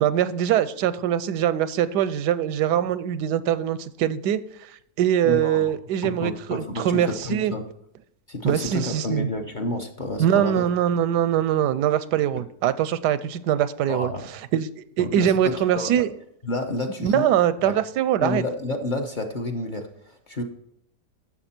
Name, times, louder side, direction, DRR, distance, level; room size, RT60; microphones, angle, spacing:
voice 1, 0.0-4.4 5.0-7.5 8.4-9.3 10.2-14.1 14.5-14.7 15.0-16.1 17.0-18.4, right 10 dB, 90° right, 15 dB, 1.2 m, -22 dB
voice 2, 5.2-5.7 6.0-7.7 8.3-10.6 13.9-14.3 15.0-16.0 16.4-17.3 17.6-17.8 18.2-20.4, left 2 dB, 35° left, 4 dB, 0.9 m, -30 dB
11.0 x 7.3 x 4.4 m, 0.75 s
omnidirectional pair, 1.7 m